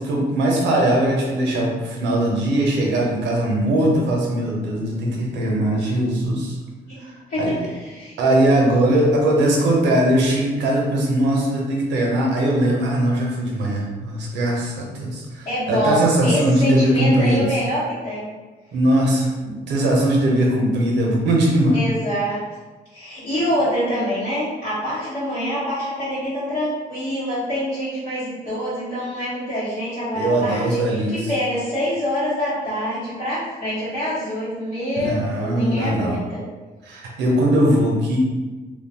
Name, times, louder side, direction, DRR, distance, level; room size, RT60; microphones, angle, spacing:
voice 1, 0.0-6.6 7.0-7.6 8.2-17.4 18.7-21.9 30.1-31.3 35.0-36.2 36.8-38.2, right 1 dB, 90° right, -2 dB, 0.6 m, -20 dB
voice 2, 7.3-8.2 15.4-18.3 21.7-22.4 22.9-30.8 31.3-36.4, equal, 85° left, -13 dB, 1.2 m, -25 dB
3.0 x 2.2 x 2.8 m, 1.3 s
supercardioid pair, 60°, 18 cm